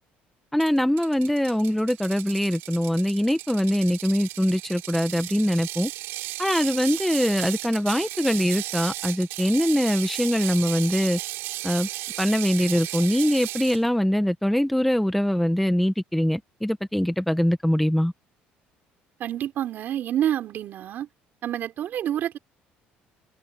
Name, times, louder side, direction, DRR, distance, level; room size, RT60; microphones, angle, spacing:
voice 1, 0.5-5.9 6.4-11.2 11.6-11.9 12.2-18.1, equal, 5° left, 1.6 m, -23 dB
Ratchet pawl, 0.6-13.8, right 19 dB, 80° right, 7.5 m, -35 dB
voice 2, 19.2-21.1 21.4-22.4, right 11 dB, 60° right, 3.7 m, -28 dB
cardioid pair, 95°, 4 cm